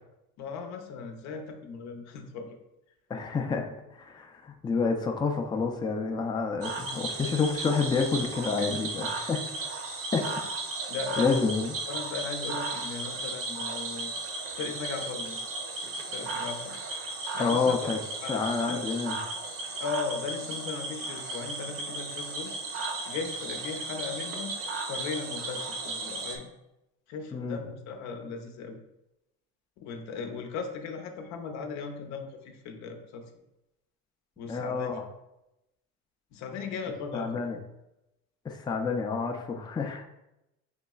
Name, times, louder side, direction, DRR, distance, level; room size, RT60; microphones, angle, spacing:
voice 1, 0.4-2.6 8.6-8.7 10.9-11.5 11.9-14.2 14.5-15.4 16.1-16.8 17.3-18.8 19.8-22.5 23.0-24.5 24.9-26.5 27.1-28.8 29.8-33.3 34.4-35.0 36.3-37.4, left 5 dB, 65° left, 5 dB, 0.7 m, -37 dB
voice 2, 3.1-3.7 4.0-9.4 10.1-10.3 11.2-11.8 17.4-18.0 18.3-19.2 27.3-27.6 34.5-34.9 37.1-37.6 38.4-40.0, left 4 dB, 15° left, 3 dB, 0.4 m, -28 dB
Cricket / Frog, 6.6-26.4, right 3 dB, 50° right, 0.8 m, -35 dB
5.2 x 3.0 x 2.3 m, 0.91 s
supercardioid pair, 95°, 30 cm